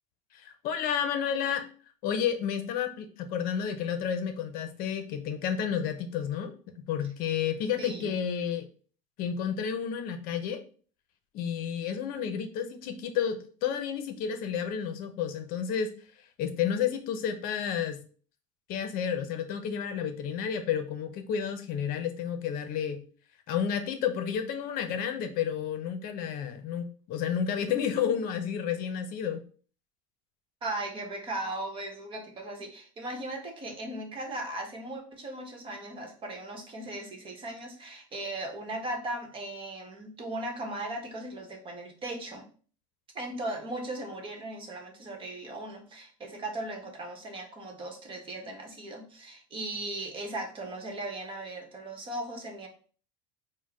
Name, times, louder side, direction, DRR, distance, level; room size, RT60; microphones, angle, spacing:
voice 1, 0.3-1.6 2.0-8.7 9.2-10.6 11.3-15.9 16.2-18.0 18.7-23.0 23.5-29.4, left 8 dB, 55° left, 8 dB, 0.7 m, -31 dB
voice 2, 7.8-8.2 30.6-42.5 43.1-52.7, right 1 dB, 30° right, 3 dB, 1.1 m, -38 dB
4.4 x 2.2 x 4.7 m, 0.41 s
supercardioid pair, 130°, 17 cm